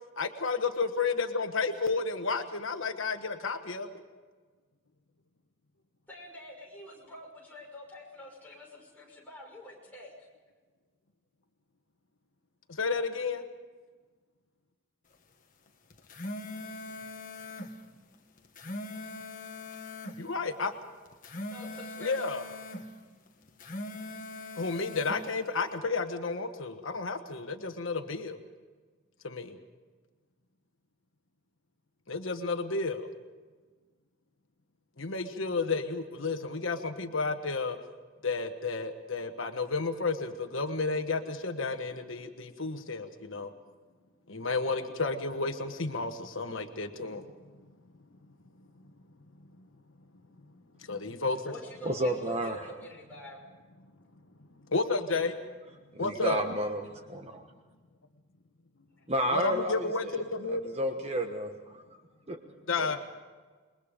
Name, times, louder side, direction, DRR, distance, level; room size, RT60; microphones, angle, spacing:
voice 1, 0.2-3.9 12.7-13.4 20.2-20.7 22.0-22.4 24.6-28.4 29.2-29.6 32.1-33.1 35.0-37.8 38.2-43.5 44.3-47.3 50.9-51.5 54.7-55.3 56.0-56.4 59.3-60.7 61.0-61.1 62.7-63.0, left 4 dB, 70° left, 7 dB, 1.3 m, -32 dB
voice 2, 6.1-10.1 21.5-22.3 51.2-53.5, left 1 dB, 10° left, -3 dB, 6.0 m, -47 dB
sound 1, 15.9-17.7 18.4-20.2 21.1-22.9 23.5-25.2, left 2 dB, 40° left, 1.6 m, -41 dB
voice 3, 51.8-52.6 55.9-56.8 57.1-57.4 59.1-60.2 60.5-62.0 62.3-62.4 62.8-62.9, equal, 30° right, 5 dB, 1.3 m, -31 dB
28.0 x 22.0 x 5.1 m, 1.4 s
head